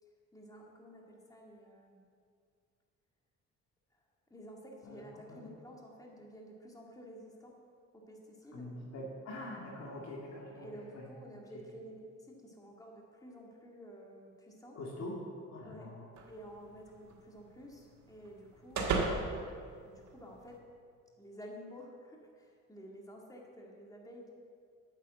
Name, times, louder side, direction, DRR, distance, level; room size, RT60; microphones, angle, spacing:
voice 1, 0.0-2.1 3.9-4.0 4.3-7.6 7.9-8.7 10.5-14.8 15.6-15.9 16.3-19.6 19.8-20.6 21.2-24.3, equal, 10° left, -1 dB, 1.9 m, -52 dB
voice 2, 8.5-10.7 10.9-11.0 14.7-15.2 15.5-16.1, left 1 dB, 60° left, -3 dB, 2.5 m, -44 dB
sound 1, 16.2-20.6, right 4 dB, 70° right, 1.7 m, -39 dB
9.3 x 7.4 x 7.7 m, 2.2 s
cardioid pair, 90°, 30 cm